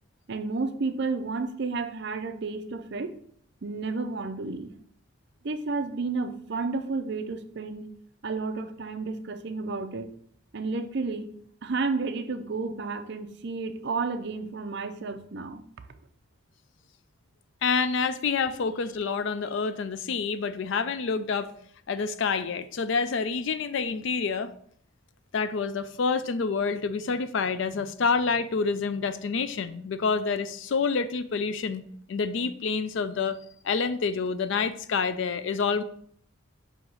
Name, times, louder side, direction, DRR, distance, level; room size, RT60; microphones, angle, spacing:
voice 1, 0.3-3.1 3.6-4.7 5.4-7.9 8.2-10.1 10.5-11.3 11.6-15.6, right 4 dB, 55° right, 9 dB, 0.5 m, -31 dB
voice 2, 17.6-21.5 21.9-24.5 25.3-33.4 33.6-35.8, left 5 dB, 60° left, 13 dB, 0.4 m, -28 dB
6.1 x 2.9 x 5.4 m, 0.63 s
head